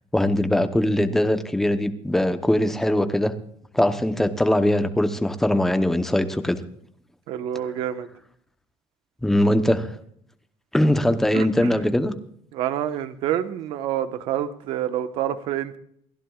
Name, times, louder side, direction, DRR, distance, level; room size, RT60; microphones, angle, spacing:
voice 1, 0.1-3.3 3.7-6.6 9.2-10.0 10.7-12.1, left 1 dB, 5° left, 8 dB, 0.9 m, -21 dB
voice 2, 7.3-8.1 11.0-11.8 12.5-15.8, right 11 dB, 65° right, 10 dB, 1.2 m, -28 dB
28.5 x 11.0 x 2.4 m, 0.67 s
cardioid pair, 175°, 10 cm